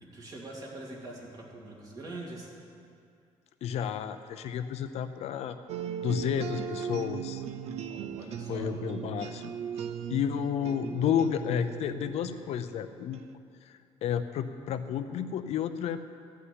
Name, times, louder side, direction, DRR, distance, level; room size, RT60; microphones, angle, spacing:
voice 1, 0.0-2.5 7.9-8.7, right 2 dB, 30° right, -2 dB, 2.3 m, -43 dB
voice 2, 3.6-5.6 6.0-7.4 8.5-9.5 10.1-13.2 13.6-16.0, left 8 dB, 65° left, 9 dB, 0.6 m, -31 dB
sound 1, 5.7-13.2, right 8 dB, 65° right, 0.5 m, -38 dB
14.0 x 5.7 x 9.7 m, 2.4 s
cardioid pair, 170°, 12 cm